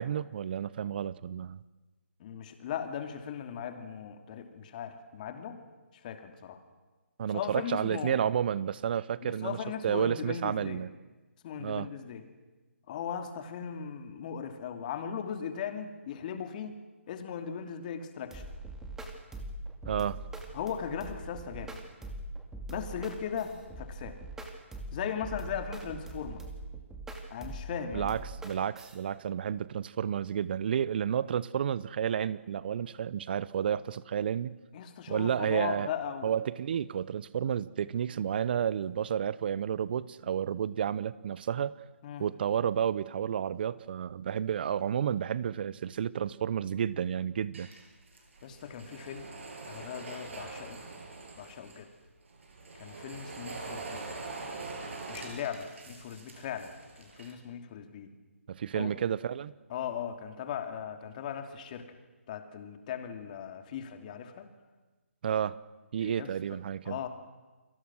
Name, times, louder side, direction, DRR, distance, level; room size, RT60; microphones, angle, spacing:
voice 1, 0.0-1.6 7.2-9.6 9.8-10.9 11.6-11.9 19.8-20.2 27.9-34.6 35.1-35.9 36.2-41.7 42.2-47.7 58.5-59.5 65.2-65.6 65.9-67.0, right 9 dB, 45° right, 19 dB, 0.9 m, -31 dB
voice 2, 2.2-5.6 6.0-6.6 7.3-8.3 9.2-10.8 11.4-12.2 12.9-16.7 17.1-18.4 20.5-21.8 22.7-24.2 24.9-26.4 27.3-28.1 34.7-36.3 42.0-42.2 48.4-49.3 49.7-50.8 51.4-51.9 52.7-54.1 55.1-58.1 58.7-58.9 59.7-61.9 62.3-64.5 66.0-66.6 66.8-67.1, left 8 dB, 35° left, 6 dB, 2.8 m, -38 dB
sound 1, 18.3-29.0, right 2 dB, 5° right, 2.3 m, -42 dB
sound 2, 47.5-51.8 52.3-57.3, right 3 dB, 60° right, 6.8 m, -44 dB
29.5 x 23.0 x 6.3 m, 1.2 s
figure-of-eight pair, 145°, 8 cm